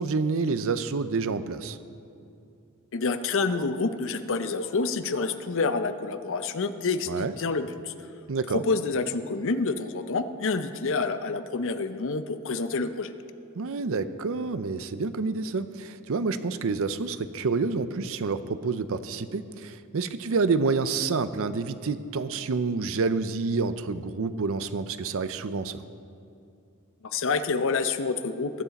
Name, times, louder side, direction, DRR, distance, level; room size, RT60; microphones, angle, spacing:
voice 1, 0.0-1.8 7.1-7.3 8.3-8.6 13.6-25.8, right 4 dB, 65° right, 12 dB, 0.5 m, -28 dB
voice 2, 2.9-7.9 8.5-13.1 27.1-28.6, left 4 dB, 60° left, 10 dB, 0.6 m, -28 dB
20.5 x 8.1 x 4.1 m, 2.6 s
head